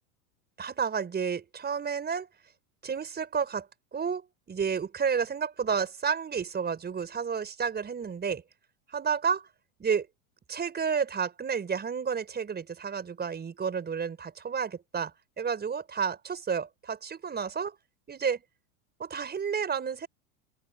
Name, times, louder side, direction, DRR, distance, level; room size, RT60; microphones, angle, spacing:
voice 1, 0.6-2.3 2.8-3.7 3.9-8.4 8.9-9.5 9.8-10.1 10.5-17.8 18.1-18.4 19.0-20.1, right 6 dB, 20° right, 5.4 m, -31 dB
open air
hypercardioid pair, 110°, 45 cm